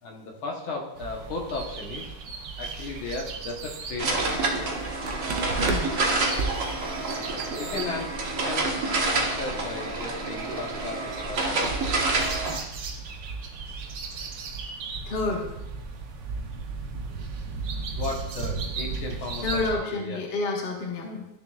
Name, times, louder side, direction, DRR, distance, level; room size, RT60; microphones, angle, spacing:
voice 1, 0.0-2.1 2.6-4.2 7.3-8.1 8.5-8.7 9.0-11.9 18.0-20.2, left 3 dB, 70° left, 0 dB, 1.9 m, -35 dB
sound 1, 0.9-19.7, right 4 dB, 60° right, 1.4 m, -35 dB
sound 2, 4.0-12.6, right 2 dB, 45° right, 1.4 m, -28 dB
voice 2, 5.6-5.9 15.1-15.5 19.4-21.3, left 3 dB, 35° left, -1 dB, 1.3 m, -29 dB
14.0 x 6.8 x 2.4 m, 0.88 s
omnidirectional pair, 2.4 m